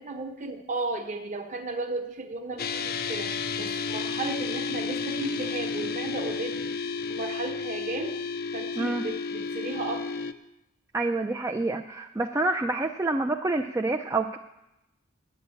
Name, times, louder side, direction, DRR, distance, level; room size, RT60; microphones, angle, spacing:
voice 1, 0.0-8.2 8.5-10.1, right 2 dB, 40° right, 6 dB, 1.0 m, -35 dB
sound 1, 2.6-10.3, left 4 dB, 50° left, 0.5 m, -32 dB
voice 2, 10.9-14.4, right 2 dB, 15° right, 2 dB, 0.4 m, -27 dB
9.6 x 8.3 x 8.4 m, 0.90 s
head